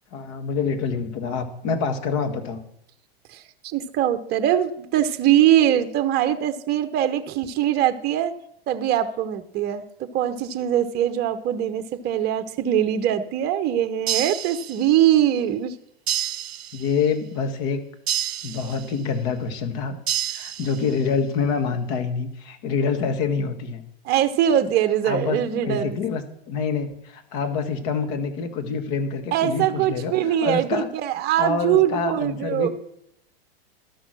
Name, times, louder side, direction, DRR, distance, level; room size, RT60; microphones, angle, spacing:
voice 1, 0.1-2.6 16.7-17.9 18.4-20.0 20.3-23.8 25.0-30.9 31.4-32.7, left 5 dB, 50° left, 8 dB, 1.7 m, -26 dB
voice 2, 3.3-8.3 8.7-15.7 24.0-26.0 29.3-32.7, right 11 dB, 30° right, 10 dB, 0.8 m, -22 dB
sound 1, 14.1-15.1 16.1-17.1 18.1-19.1 20.1-21.1, right 10 dB, 85° right, 0.6 m, -29 dB
12.5 x 6.3 x 6.2 m, 0.75 s
hypercardioid pair, 105°, 31 cm